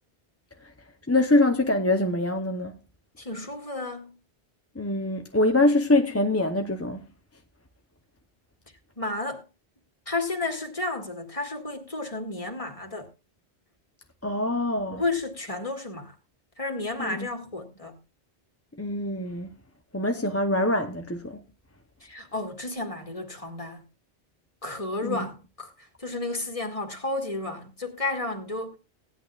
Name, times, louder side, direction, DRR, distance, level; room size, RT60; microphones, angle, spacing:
voice 1, 1.1-2.7 4.8-7.1 14.2-15.0 17.0-17.3 18.8-19.5 19.9-21.4 25.0-25.3, left 2 dB, 15° left, 0.7 m, -24 dB
voice 2, 3.2-4.2 9.0-9.4 10.1-13.1 14.9-16.1 16.6-18.0 22.0-23.8 24.6-28.8, left 2 dB, 30° left, 2.1 m, -32 dB
17.5 x 10.5 x 2.4 m
omnidirectional pair, 1.1 m